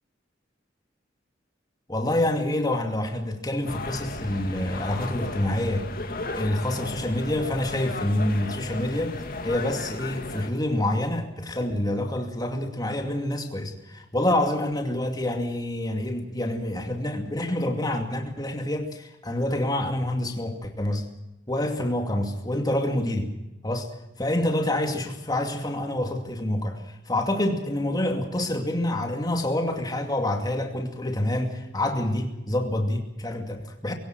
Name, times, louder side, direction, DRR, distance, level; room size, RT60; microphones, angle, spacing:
voice 1, 1.9-9.2 9.4-21.1 21.5-23.3 23.6-23.8 24.2-33.9, left 1 dB, 20° left, 3 dB, 2.5 m, -27 dB
sound 1, 3.7-10.5, left 2 dB, 55° left, 2.3 m, -35 dB
23.0 x 17.5 x 7.7 m, 0.93 s
head